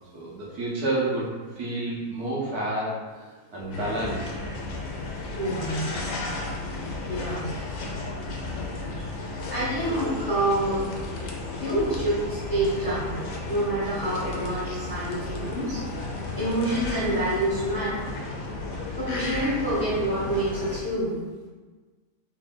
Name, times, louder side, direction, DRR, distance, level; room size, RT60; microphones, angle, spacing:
voice 1, 0.1-3.2 3.5-4.3, right 2 dB, 70° right, -5 dB, 1.3 m, -29 dB
sound 1, 3.7-20.8, left 2 dB, 85° left, 1.2 m, -33 dB
voice 2, 5.4-5.8 7.1-7.5 8.8-9.1 9.5-11.0 11.5-15.8 16.3-18.0 19.0-21.2, right 1 dB, 15° left, -10 dB, 0.9 m, -27 dB
3.4 x 2.6 x 3.6 m, 1.4 s
omnidirectional pair, 1.8 m